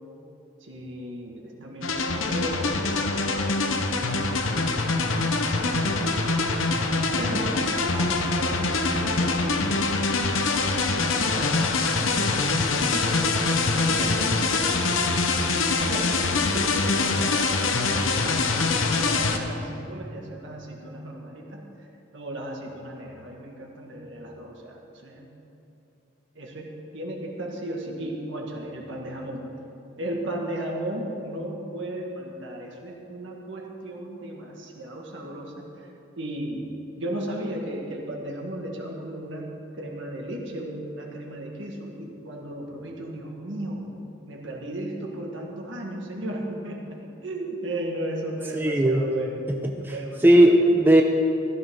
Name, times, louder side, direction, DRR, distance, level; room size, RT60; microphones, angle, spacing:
voice 1, 0.6-5.2 5.7-6.4 7.1-9.7 10.6-21.6 22.1-25.3 26.4-29.5 30.0-35.7 36.2-36.7 37.0-39.5 39.8-43.9 44.2-49.5 49.8-50.7, right 1 dB, 65° right, -1 dB, 2.0 m, -35 dB
sound 1, 1.8-19.4, left 3 dB, 80° left, 1.0 m, -24 dB
voice 2, 48.5-49.1 49.8-49.9 50.2-51.0, right 1 dB, 10° right, 2 dB, 0.6 m, -17 dB
15.5 x 14.0 x 3.9 m, 2.8 s
head